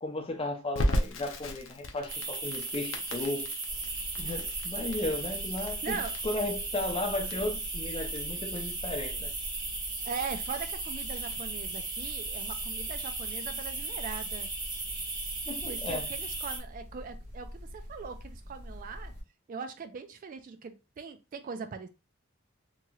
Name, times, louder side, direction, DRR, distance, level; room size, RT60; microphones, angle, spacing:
voice 1, 0.0-3.5 4.2-6.0 6.2-9.3 15.5-16.1, left 2 dB, 30° left, 0.6 m, -35 dB
Crackle, 0.7-11.5, equal, 70° left, 0.6 m, -37 dB
sound 1, 2.1-16.6, right 3 dB, 20° right, 0.9 m, -36 dB
sound 2, 3.7-19.2, equal, 90° right, 1.4 m, -45 dB
voice 2, 5.8-6.1 10.1-14.5 15.6-19.1 19.5-21.9, right 5 dB, 45° right, 0.3 m, -40 dB
3.0 x 2.8 x 2.3 m
head